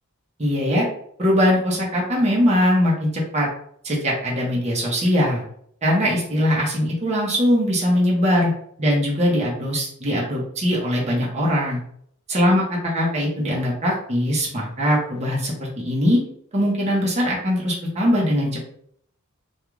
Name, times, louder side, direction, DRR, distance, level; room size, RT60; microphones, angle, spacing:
voice 1, 0.4-0.9 1.2-3.5 3.8-5.4 5.8-8.5 8.8-11.8 12.3-12.6 12.9-16.2 16.5-18.7, equal, 30° right, -4 dB, 0.7 m, -21 dB
2.3 x 2.3 x 3.1 m, 0.66 s
head